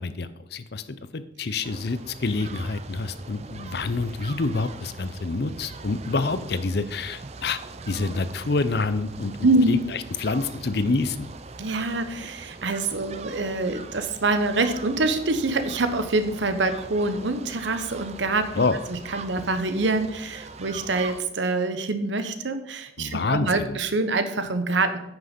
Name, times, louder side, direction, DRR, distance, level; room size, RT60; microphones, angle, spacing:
voice 1, 0.0-7.6 7.9-11.3 18.5-18.8 23.0-23.8, left 3 dB, 60° left, 13 dB, 0.6 m, -27 dB
sound 1, 1.6-21.2, right 3 dB, 35° right, 0.5 m, -41 dB
voice 2, 9.4-9.8 11.6-25.0, right 2 dB, 75° right, 9 dB, 0.9 m, -25 dB
9.4 x 6.2 x 5.2 m, 0.85 s
head